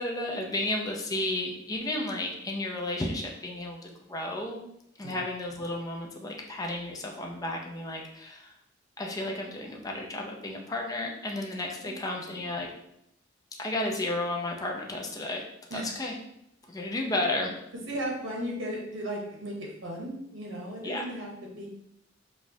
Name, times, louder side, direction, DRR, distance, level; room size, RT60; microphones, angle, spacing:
voice 1, 0.0-4.6 5.0-8.5 9.0-12.7 13.6-15.4 15.7-16.1 16.7-17.6 20.8-21.0, left 1 dB, 20° left, 1 dB, 0.4 m, -33 dB
voice 2, 11.8-12.4 15.7-15.9 17.9-21.7, equal, 85° right, -2 dB, 0.9 m, -36 dB
4.9 x 2.3 x 2.7 m, 0.77 s
head